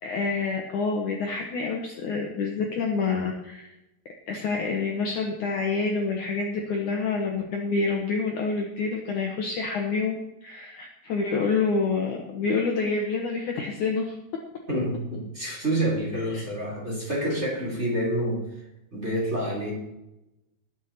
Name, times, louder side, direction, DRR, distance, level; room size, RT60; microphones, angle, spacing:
voice 1, 0.0-3.7 4.3-14.2 16.1-16.4, left 4 dB, 65° left, 1 dB, 2.3 m, -27 dB
voice 2, 14.7-18.4 18.9-19.7, right 1 dB, 15° right, -4 dB, 3.6 m, -28 dB
20.0 x 7.7 x 4.3 m, 0.92 s
omnidirectional pair, 4.7 m